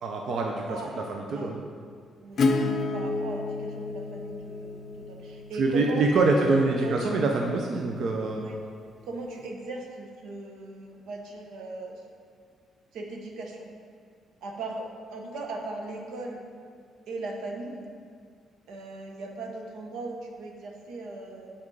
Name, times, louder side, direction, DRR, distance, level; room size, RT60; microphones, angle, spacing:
voice 1, 0.0-1.6 5.5-8.5, right 3 dB, 55° right, 1 dB, 0.6 m, -25 dB
voice 2, 0.6-1.0 1.3-1.5 2.2-6.4 6.8-7.1 8.4-8.6 9.1-12.0 12.9-13.7 14.4-16.5 17.1-17.9 18.7-21.5, right 2 dB, 90° right, 1 dB, 0.9 m, -38 dB
Acoustic guitar / Strum, 2.4-7.9, left 3 dB, 45° left, 0.5 m, -31 dB
7.6 x 4.3 x 4.8 m, 2.1 s
cardioid pair, 150°, 0 cm